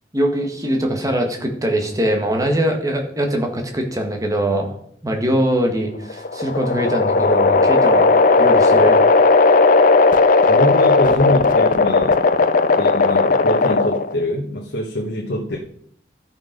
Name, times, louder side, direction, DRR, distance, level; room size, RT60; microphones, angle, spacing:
voice 1, 0.1-4.8 5.0-9.0, right 1 dB, 20° right, 2 dB, 1.7 m, -22 dB
sound 1, 6.0-14.2, left 3 dB, 50° left, 0.5 m, -15 dB
voice 2, 10.5-12.2 12.8-15.6, left 1 dB, 85° left, -3 dB, 1.5 m, -23 dB
12.5 x 6.0 x 5.3 m, 0.66 s
head